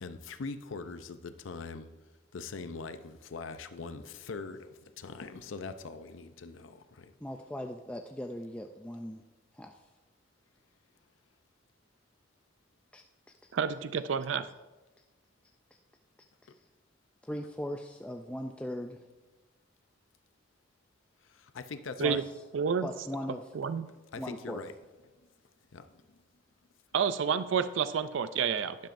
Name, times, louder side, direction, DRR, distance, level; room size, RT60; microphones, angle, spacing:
voice 1, 0.0-1.9 2.3-7.1 21.3-22.2 24.1-24.7 25.7-25.9, left 4 dB, 85° left, 10 dB, 0.6 m, -42 dB
voice 2, 7.2-9.2 9.5-9.8 12.9-13.0 16.4-16.5 17.2-19.0 22.0-22.2 22.8-23.5 24.2-24.6, equal, 5° left, 3 dB, 0.3 m, -39 dB
voice 3, 13.5-14.5 22.0-22.2 22.5-22.9 23.5-23.9 26.9-28.8, right 6 dB, 75° right, 13 dB, 0.4 m, -29 dB
12.0 x 10.5 x 2.6 m, 1.1 s
head